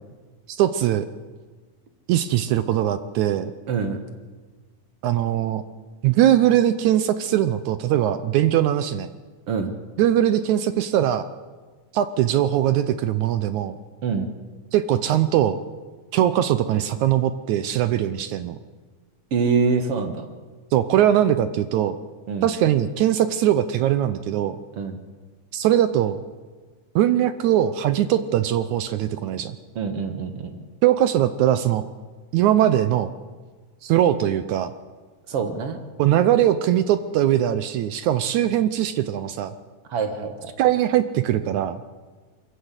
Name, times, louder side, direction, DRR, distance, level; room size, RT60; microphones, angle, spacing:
voice 1, 0.5-1.1 2.1-3.5 5.0-5.6 6.0-9.1 10.0-11.3 11.9-13.8 14.7-15.6 16.1-18.6 20.7-22.0 22.4-24.6 25.5-26.2 27.0-29.6 30.8-31.8 32.3-33.1 33.8-34.7 36.0-39.5 40.6-41.8, right 11 dB, 75° right, 12 dB, 1.9 m, -21 dB
voice 2, 3.7-4.0 9.5-9.7 14.0-14.3 19.3-20.3 22.3-22.5 24.8-25.0 29.8-30.5 35.3-35.8 39.9-40.5, right 5 dB, 50° right, 7 dB, 2.1 m, -25 dB
23.0 x 15.0 x 8.2 m, 1.4 s
omnidirectional pair, 3.8 m